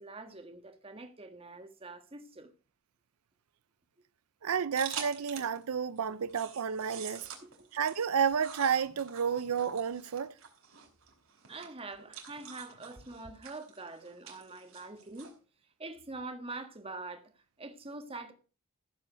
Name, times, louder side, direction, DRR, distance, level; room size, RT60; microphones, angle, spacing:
voice 1, 0.0-2.5 7.6-7.7 11.5-15.3 15.8-17.3 17.6-18.3, right 3 dB, 25° right, 1.5 m, -44 dB
voice 2, 4.4-7.3 7.7-10.3, right 7 dB, 85° right, 0.5 m, -31 dB
sound 1, 4.7-5.6 6.0-15.3, right 7 dB, 70° right, 3.9 m, -46 dB
14.5 x 7.6 x 5.1 m
head